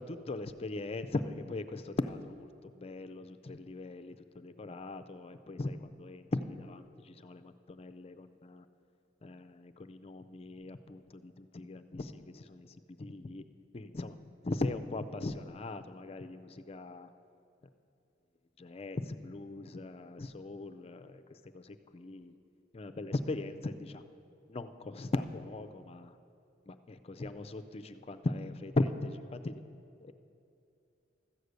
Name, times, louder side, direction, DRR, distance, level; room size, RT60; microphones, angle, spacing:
voice 1, 0.0-8.7 9.2-12.7 13.0-13.4 13.7-14.2 14.4-17.1 18.6-21.2 21.5-22.3 22.7-24.0 24.5-26.1 26.7-29.5 30.0-30.1, left 2 dB, 30° left, 10 dB, 0.5 m, -39 dB
13.5 x 6.5 x 8.1 m, 2.6 s
head